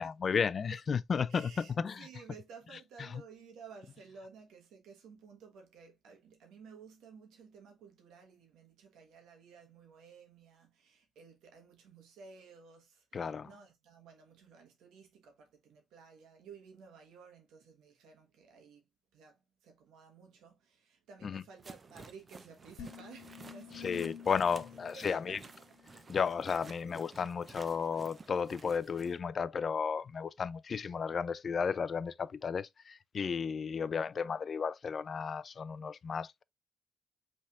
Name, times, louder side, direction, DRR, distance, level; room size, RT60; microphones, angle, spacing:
voice 1, 0.0-2.1 3.0-3.2 13.1-13.5 21.2-21.4 23.7-25.4 26.1-36.4, left 6 dB, 45° left, 0.3 m, -33 dB
voice 2, 1.3-18.9 19.1-24.4 24.9-26.0, right 5 dB, 85° right, 1.2 m, -55 dB
sound 1, 21.6-29.2, right 4 dB, 30° right, 0.5 m, -53 dB
sound 2, 22.8-26.1, left 8 dB, 90° left, 0.9 m, -49 dB
5.5 x 3.4 x 2.4 m
cardioid pair, 90°, 0 cm